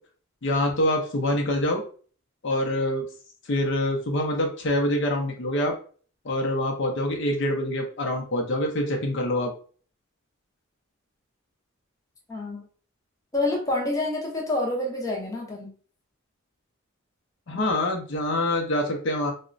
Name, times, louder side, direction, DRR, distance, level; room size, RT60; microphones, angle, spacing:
voice 1, 0.4-1.8 2.4-3.1 3.5-5.8 6.2-9.5 17.5-19.3, left 1 dB, 60° left, 2 dB, 0.6 m, -25 dB
voice 2, 12.3-12.7 13.3-15.7, left 2 dB, 15° left, -1 dB, 0.6 m, -27 dB
2.9 x 2.1 x 2.5 m, 0.42 s
head